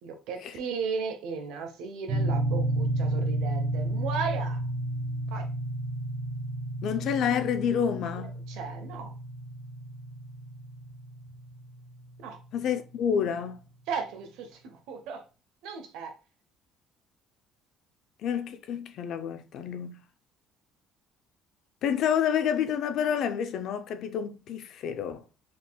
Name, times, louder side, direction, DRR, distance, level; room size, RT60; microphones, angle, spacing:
voice 1, 0.0-4.6 5.3-5.5 8.5-9.1 12.2-12.4 13.9-15.2 15.6-16.1, right 5 dB, 80° right, 1.0 m, -35 dB
sound 1, 2.1-12.2, right 1 dB, 45° right, 1.1 m, -32 dB
voice 2, 6.8-8.3 12.5-13.6 18.2-20.0 21.8-25.2, left 8 dB, 55° left, 0.5 m, -29 dB
4.6 x 3.8 x 2.3 m
cardioid pair, 170°, 0 cm